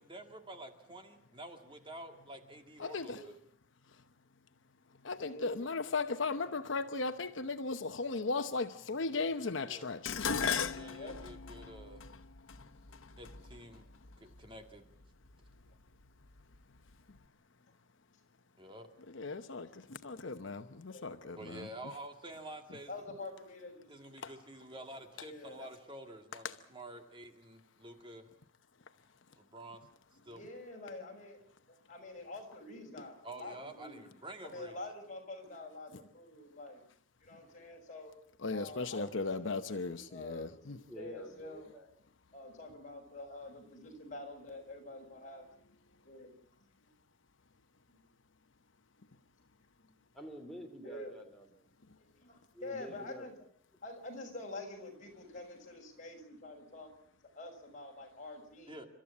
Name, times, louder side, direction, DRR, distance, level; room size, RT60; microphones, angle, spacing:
voice 1, 0.0-3.1 9.6-9.9 10.7-12.0 13.2-13.8 14.4-14.9 18.6-18.9 21.3-22.9 23.9-26.4 26.7-28.2 29.5-29.8 30.3-30.4 33.2-34.7 58.7-58.9, right 1 dB, 25° right, 2.1 m, -49 dB
voice 2, 2.8-3.2 5.0-10.3 19.1-19.7 20.0-21.7 24.2-24.3 26.4-26.5 38.4-40.8, left 3 dB, 65° left, 0.9 m, -36 dB
voice 3, 5.2-5.5 10.9-11.2 20.9-21.2 22.9-23.9 25.2-25.7 30.1-31.4 31.7-34.1 34.4-36.8 37.2-38.1 38.5-41.7 42.3-45.5 46.0-46.3 46.8-46.9 47.9-48.0 50.8-51.1 52.2-53.3 53.8-56.9 57.3-58.9, left 2 dB, 40° left, 6.5 m, -47 dB
Dishes pots and pans, 10.1-14.4 15.3-15.7 16.1-16.9 17.2-17.3, left 6 dB, 90° left, 1.2 m, -37 dB
voice 4, 40.9-41.9 50.1-51.7 52.5-53.3, equal, ahead, 2.9 m, -48 dB
30.0 x 13.5 x 8.5 m
head